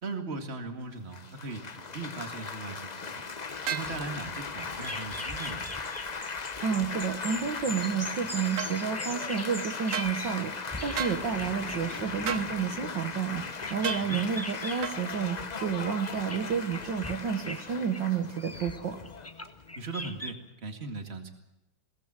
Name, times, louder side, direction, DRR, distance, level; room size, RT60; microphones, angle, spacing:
voice 1, 0.0-3.2 3.7-5.7 14.1-14.2 19.7-21.3, right 3 dB, 30° right, 4 dB, 2.3 m, -38 dB
Laughter / Applause / Chatter, 1.1-20.2, left 4 dB, 65° left, 0.4 m, -38 dB
sound 1, 3.7-3.9 8.6-8.7 9.9-10.1 11.0-11.2 12.3-12.5 13.8-14.1 14.8-15.0, right 8 dB, 45° right, 1.3 m, -32 dB
sound 2, 3.8-10.4 10.7-15.0 15.4-15.7 16.3-17.2 17.4-17.6 17.9-20.3, left 1 dB, 10° left, 0.8 m, -41 dB
voice 2, 6.6-19.0, right 7 dB, 65° right, 4 dB, 2.0 m, -30 dB
22.0 x 17.5 x 7.5 m, 0.91 s
omnidirectional pair, 2.2 m